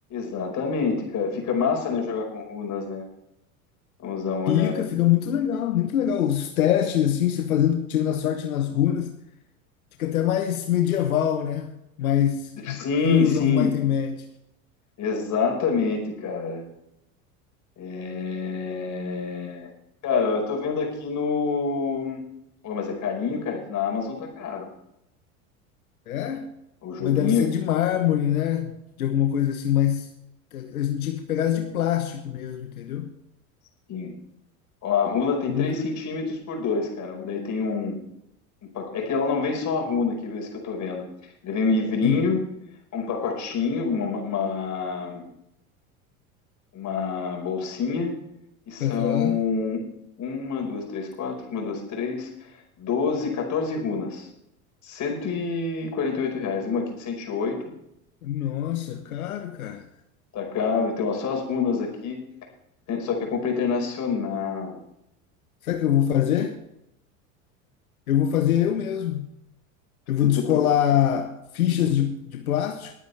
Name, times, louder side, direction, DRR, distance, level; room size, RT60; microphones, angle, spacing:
voice 1, 0.1-3.1 4.0-4.9 12.6-13.7 15.0-16.6 17.8-19.7 20.0-22.2 22.6-24.7 26.8-27.5 33.9-34.2 34.8-38.0 38.6-41.0 41.4-42.4 42.9-45.3 46.7-48.2 48.7-49.8 50.2-52.5 52.8-54.3 54.8-57.7 60.3-62.2 62.9-64.8 70.2-70.6, left 5 dB, 45° left, 5.2 m, -27 dB
voice 2, 4.5-9.1 10.0-11.7 12.0-14.2 26.1-26.5 27.0-28.7 29.0-30.1 30.5-33.1 35.5-35.7 42.0-42.3 48.8-49.4 58.2-59.8 65.6-66.6 68.1-69.3 70.1-72.9, left 10 dB, 85° left, 1.1 m, -24 dB
21.5 x 9.1 x 3.4 m
hypercardioid pair, 85°, 42 cm